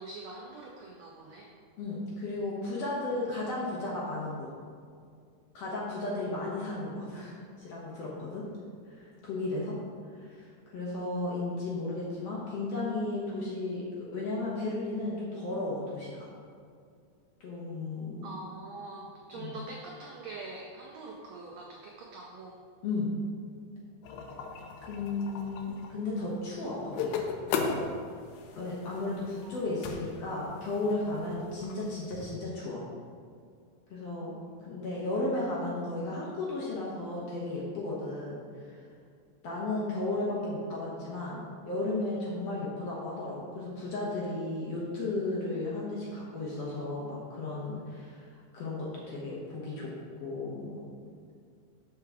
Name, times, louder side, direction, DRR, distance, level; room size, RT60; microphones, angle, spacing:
voice 1, 0.0-1.5 18.2-22.6 29.4-29.6, right 2 dB, 85° right, -1 dB, 1.5 m, -44 dB
voice 2, 1.8-4.5 5.5-8.4 8.9-9.8 10.2-16.3 17.4-18.3 19.3-19.6 22.8-23.1 24.8-27.3 28.6-32.8 33.9-34.3 34.6-38.8 39.4-51.1, left 2 dB, 65° left, -6 dB, 1.7 m, -34 dB
sound 1, 24.0-32.4, left 5 dB, 80° left, 1.8 m, -38 dB
5.7 x 4.8 x 6.0 m, 2.2 s
omnidirectional pair, 3.9 m